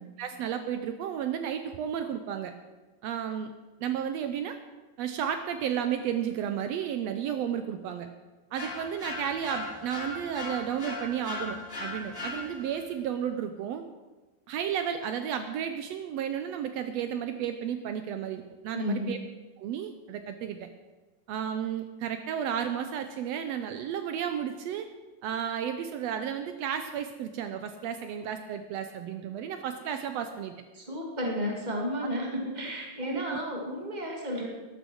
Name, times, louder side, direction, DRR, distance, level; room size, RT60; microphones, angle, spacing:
voice 1, 0.2-2.5 3.0-3.5 3.8-4.5 5.0-8.1 8.5-13.8 14.5-19.2 19.6-20.7 21.3-24.9 25.2-30.5 33.1-33.4, right 9 dB, 90° right, 8 dB, 1.4 m, -33 dB
scary hit, 8.5-12.9, left 2 dB, 25° left, 3.4 m, -38 dB
voice 2, 18.7-19.1 30.7-34.5, equal, 15° right, 0 dB, 1.9 m, -32 dB
13.0 x 12.0 x 6.3 m, 1.2 s
omnidirectional pair, 3.9 m